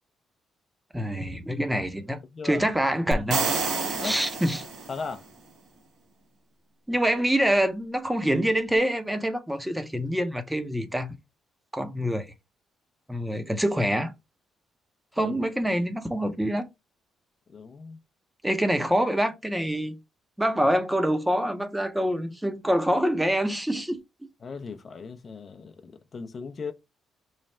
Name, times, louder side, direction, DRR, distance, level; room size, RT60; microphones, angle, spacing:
voice 1, 0.9-2.2 2.4-3.5 4.0-4.6 6.9-11.1 11.7-12.3 13.1-14.1 15.2-16.7 18.4-20.0 20.4-24.0, equal, 5° right, 0.6 m, -25 dB
voice 2, 2.3-2.6 4.0-4.2 4.9-5.2 15.2-15.4 17.5-18.0 24.4-26.7, left 5 dB, 45° left, 0.5 m, -37 dB
sound 1, 3.1-5.2, right 4 dB, 80° right, 1.0 m, -29 dB
3.2 x 2.3 x 4.1 m
cardioid pair, 90°, 0 cm